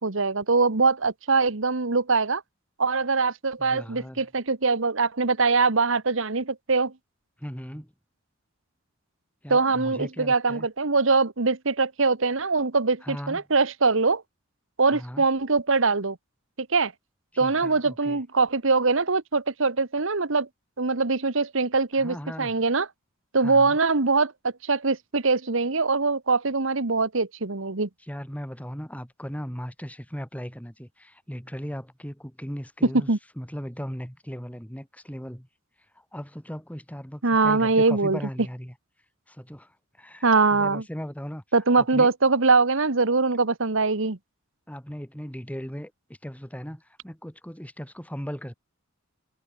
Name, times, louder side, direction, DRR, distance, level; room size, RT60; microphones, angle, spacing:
voice 1, 0.0-2.4 2.8-6.9 9.5-14.2 14.8-16.2 16.7-16.9 17.4-20.5 20.8-22.9 23.3-27.9 33.1-33.2 37.2-38.2 40.2-40.8 41.5-44.2, right 4 dB, 65° right, 1.4 m, -23 dB
voice 2, 3.6-4.3 7.4-7.9 9.4-10.7 13.0-13.4 14.9-15.2 17.3-18.2 22.0-22.6 23.4-23.8 28.0-33.1 33.4-35.5 36.0-38.7 39.3-41.4 41.8-42.1 44.7-45.9 46.2-48.5, equal, 5° left, 4.1 m, -37 dB
head